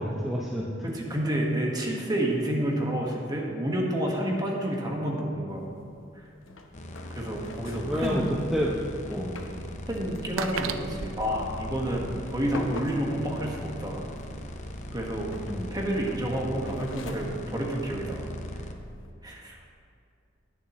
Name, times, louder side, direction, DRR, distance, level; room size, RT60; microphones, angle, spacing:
voice 1, 0.0-0.7 7.9-8.8 9.0-9.4 15.5-15.7, equal, ahead, -5 dB, 0.7 m, -29 dB
voice 2, 0.8-5.7 7.1-8.2 9.9-14.0 14.9-15.4 15.7-18.3 19.2-19.6, right 1 dB, 20° right, -1 dB, 1.5 m, -29 dB
sound 1, 5.5-19.1, left 2 dB, 80° left, 0.9 m, -46 dB
sound 2, 6.7-18.7, left 1 dB, 40° left, 0.7 m, -40 dB
sound 3, 8.0-8.1 8.3-8.4 9.4-9.5 9.9-12.2, right 6 dB, 90° right, 0.5 m, -36 dB
19.0 x 7.2 x 3.1 m, 2.3 s
head